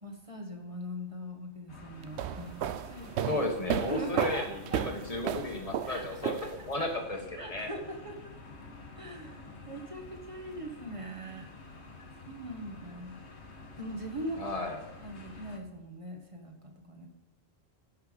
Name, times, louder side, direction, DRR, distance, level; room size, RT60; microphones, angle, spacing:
voice 1, 0.0-3.4 3.9-4.8 5.8-6.5 7.4-8.3 9.0-11.5 12.2-13.2 13.8-14.5 15.0-17.1, right 1 dB, 30° right, 2 dB, 1.7 m, -41 dB
sound 1, 1.7-15.6, left 3 dB, 85° left, 1.7 m, -49 dB
sound 2, 2.0-6.9, right 10 dB, 80° right, 0.8 m, -34 dB
voice 2, 3.2-6.4 6.7-7.7 14.4-14.8, left 2 dB, 35° left, 2 dB, 1.6 m, -34 dB
11.0 x 5.8 x 5.2 m, 1.0 s
omnidirectional pair, 1.1 m